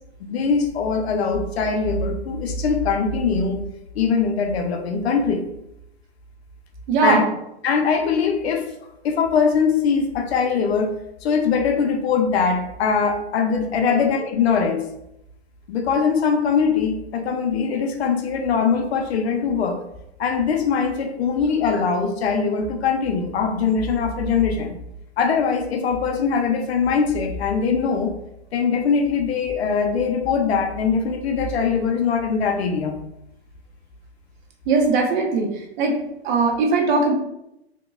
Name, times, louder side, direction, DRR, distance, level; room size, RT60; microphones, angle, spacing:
voice 1, 0.2-3.6 3.9-5.4 7.0-7.2 7.6-8.7 9.0-10.9 11.2-14.9 15.7-19.8 20.2-24.7 25.2-28.1 28.5-33.0, left 5 dB, 70° left, 5 dB, 0.7 m, -21 dB
voice 2, 6.9-7.2 13.8-14.0 34.7-36.0 36.2-37.1, right 4 dB, 45° right, 1 dB, 0.8 m, -20 dB
3.7 x 2.8 x 2.3 m, 0.84 s
hypercardioid pair, 125°, 33 cm